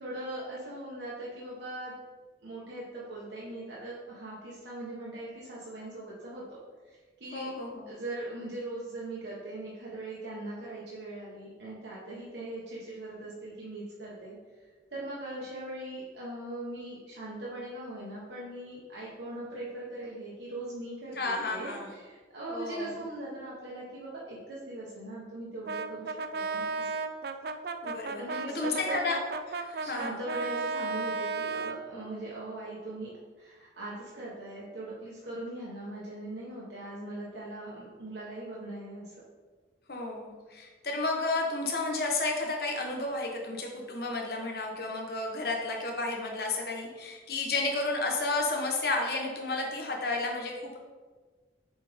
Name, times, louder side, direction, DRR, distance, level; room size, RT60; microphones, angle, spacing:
voice 1, 0.0-2.0 2.4-6.4 6.8-7.5 7.9-14.4 14.9-27.0 28.2-28.9 29.7-33.1 33.4-39.1, right 1 dB, 75° right, -7 dB, 1.3 m, -40 dB
voice 2, 7.3-7.9 21.2-21.9 22.5-22.9 27.8-28.2 28.5-29.2 29.5-30.2 39.9-50.8, left 3 dB, 55° left, 1 dB, 1.1 m, -32 dB
Brass instrument, 25.7-31.8, right 4 dB, 55° right, 0.4 m, -34 dB
7.3 x 4.3 x 3.6 m, 1.4 s
head